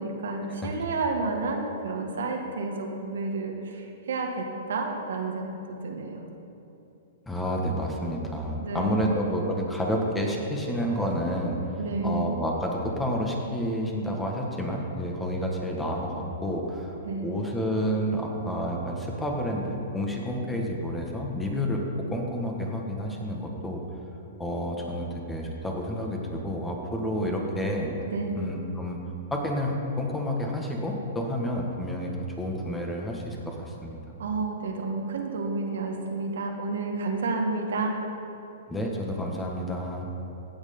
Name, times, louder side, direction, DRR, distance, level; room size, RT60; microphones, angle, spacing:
voice 1, 0.0-6.3 8.6-9.1 11.7-12.2 17.0-17.3 28.1-28.4 34.2-37.9, right 3 dB, 80° right, 2 dB, 1.7 m, -30 dB
voice 2, 7.3-11.6 12.0-17.0 17.2-23.8 24.4-27.9 28.4-29.0 29.3-32.1 32.4-34.0 38.7-40.1, equal, 10° left, 0 dB, 1.7 m, -29 dB
16.5 x 6.5 x 5.4 m, 2.8 s
hypercardioid pair, 135°, 0 cm